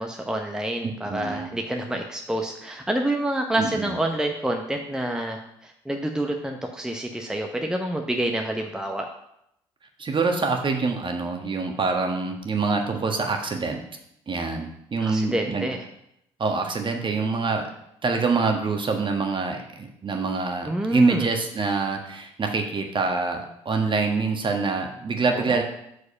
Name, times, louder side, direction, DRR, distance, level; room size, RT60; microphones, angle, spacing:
voice 1, 0.0-9.1 15.0-15.8 20.7-21.3 25.3-25.6, right 1 dB, 5° right, 3 dB, 0.9 m, -28 dB
voice 2, 1.0-1.5 3.6-3.9 10.0-13.8 14.3-15.7 16.4-17.7 18.0-25.6, right 4 dB, 35° right, 4 dB, 1.3 m, -25 dB
6.4 x 4.9 x 5.4 m, 0.77 s
figure-of-eight pair, 50°, 15 cm